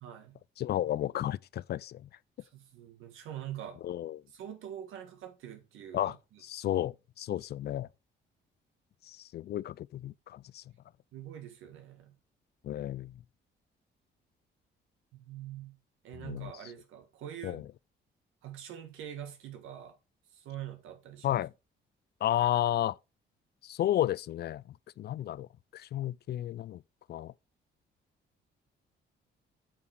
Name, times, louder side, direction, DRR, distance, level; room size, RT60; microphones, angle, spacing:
voice 1, 0.0-0.4 2.4-3.8 4.3-6.4 11.1-12.2 15.1-15.8 16.0-17.6 18.4-20.0 20.3-21.4, right 10 dB, 90° right, 1.8 m, -44 dB
voice 2, 0.6-2.1 3.8-4.2 5.9-6.2 6.4-7.9 9.0-10.6 12.6-13.2 16.2-16.5 17.4-17.6 21.2-21.5 22.2-23.0 23.6-25.5 25.7-26.8 27.1-27.3, left 12 dB, 55° left, 0.4 m, -32 dB
8.3 x 4.8 x 4.8 m
cardioid pair, 90°, 20 cm